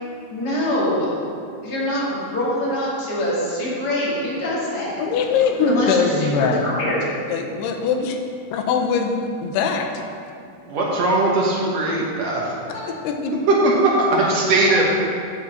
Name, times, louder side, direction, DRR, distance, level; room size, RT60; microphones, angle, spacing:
voice 1, 0.3-1.1 1.6-5.0 5.7-7.0, left 1 dB, 30° left, -7 dB, 2.0 m, -24 dB
voice 2, 5.0-6.7 7.3-8.2 8.5-10.0 13.0-13.3, left 5 dB, 85° left, 4 dB, 2.9 m, -21 dB
voice 3, 10.6-12.6 13.5-14.9, right 2 dB, 85° right, -4 dB, 1.4 m, -19 dB
7.2 x 6.3 x 7.4 m, 2.4 s
omnidirectional pair, 4.7 m